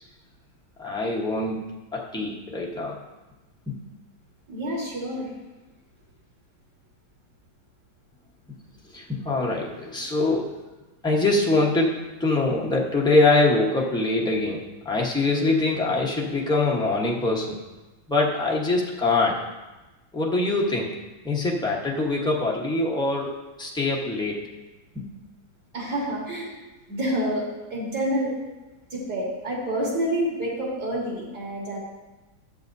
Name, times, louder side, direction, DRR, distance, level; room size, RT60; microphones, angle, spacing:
voice 1, 0.8-1.6 1.9-3.0 3.7-3.8 8.9-10.5 11.0-17.6 18.1-19.4 20.1-20.9 21.2-24.4 24.9-25.1, left 2 dB, 5° left, -3 dB, 0.6 m, -24 dB
voice 2, 4.5-5.3 25.7-26.5 26.9-27.4 27.7-28.3 28.9-31.8, right 1 dB, 60° right, -5 dB, 2.5 m, -28 dB
12.5 x 8.4 x 2.7 m, 1.1 s
omnidirectional pair, 2.1 m